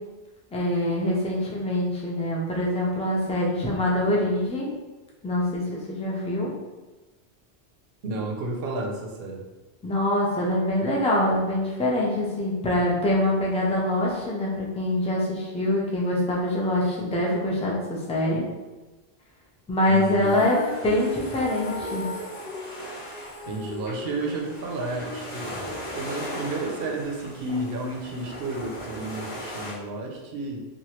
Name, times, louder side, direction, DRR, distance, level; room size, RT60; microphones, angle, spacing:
voice 1, 0.5-4.7 5.2-6.5 9.8-18.4 19.7-20.6 20.8-22.1, left 1 dB, 10° left, -4 dB, 0.3 m, -24 dB
voice 2, 8.0-9.4 19.9-20.4 23.5-25.6 26.0-30.7, right 2 dB, 70° right, 0 dB, 0.8 m, -31 dB
sound 1, 19.9-29.7, equal, 30° left, 1.0 m, -39 dB
Female singing, 20.2-26.4, left 3 dB, 65° left, 0.8 m, -39 dB
3.1 x 2.4 x 2.9 m, 1.2 s
omnidirectional pair, 1.1 m